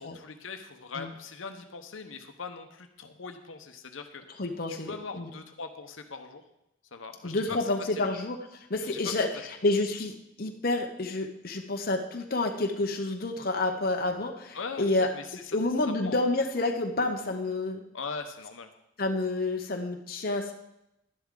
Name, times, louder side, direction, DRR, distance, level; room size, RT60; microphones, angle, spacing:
voice 1, 0.0-4.2 4.7-6.4 6.9-8.1 8.8-9.0 14.5-15.7 16.0-16.2 17.9-18.7, left 4 dB, 75° left, 6 dB, 0.9 m, -41 dB
voice 2, 4.4-5.3 7.2-9.3 9.6-10.1 10.4-15.1 15.5-17.8 19.0-20.5, left 2 dB, 45° left, 3 dB, 0.8 m, -29 dB
11.5 x 10.5 x 3.8 m, 0.86 s
head